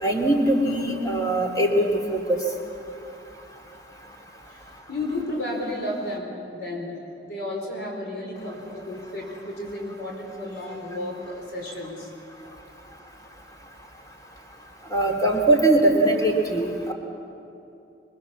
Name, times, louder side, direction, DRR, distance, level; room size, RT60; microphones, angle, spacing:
voice 1, 0.0-2.4 14.9-16.9, right 1 dB, 20° left, 0 dB, 3.1 m, -21 dB
voice 2, 4.9-12.1, left 1 dB, 75° left, 0 dB, 4.6 m, -32 dB
26.0 x 22.5 x 7.3 m, 2.7 s
head